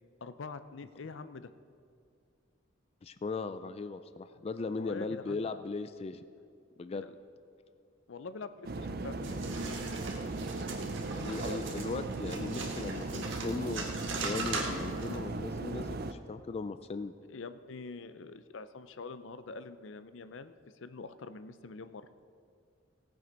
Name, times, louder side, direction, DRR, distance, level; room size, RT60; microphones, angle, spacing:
voice 1, 0.2-1.5 4.7-5.4 7.0-7.1 8.1-9.8 17.3-22.1, left 4 dB, 80° left, 12 dB, 0.5 m, -45 dB
voice 2, 3.0-6.2 6.8-7.1 11.1-17.1, left 4 dB, 30° left, 11 dB, 0.3 m, -38 dB
sound 1, 8.6-16.1, right 2 dB, 55° right, 0.6 m, -37 dB
sound 2, 9.2-15.2, right 4 dB, 75° right, 1.6 m, -40 dB
17.5 x 7.8 x 5.2 m, 2.3 s
head